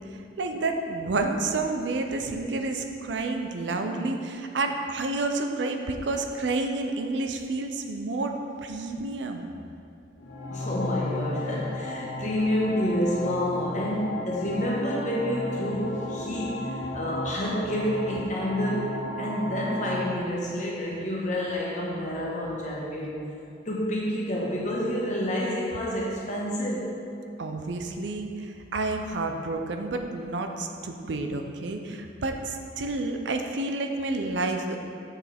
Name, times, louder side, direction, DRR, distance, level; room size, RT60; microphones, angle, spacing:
voice 1, 0.4-8.3 8.6-9.5 27.4-34.8, right 2 dB, 80° right, 4 dB, 0.6 m, -30 dB
sound 1, 10.2-20.2, left 1 dB, 80° left, 0.8 m, -34 dB
voice 2, 10.5-23.2 23.6-26.9, equal, 40° left, -4 dB, 1.3 m, -29 dB
7.1 x 6.1 x 3.5 m, 2.5 s
head